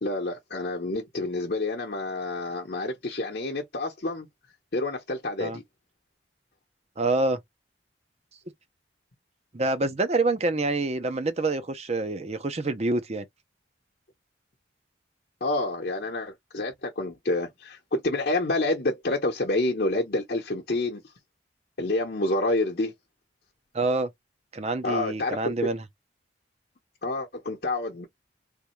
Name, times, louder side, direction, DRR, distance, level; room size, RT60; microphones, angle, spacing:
voice 1, 0.0-4.3 4.7-5.6 15.4-21.0 21.8-22.9 24.8-25.6 27.0-28.1, left 2 dB, 55° left, 0.9 m, -28 dB
voice 2, 7.0-7.4 9.5-13.2 23.7-24.1 24.5-25.8, right 2 dB, 35° right, 0.6 m, -26 dB
3.5 x 2.6 x 3.0 m
head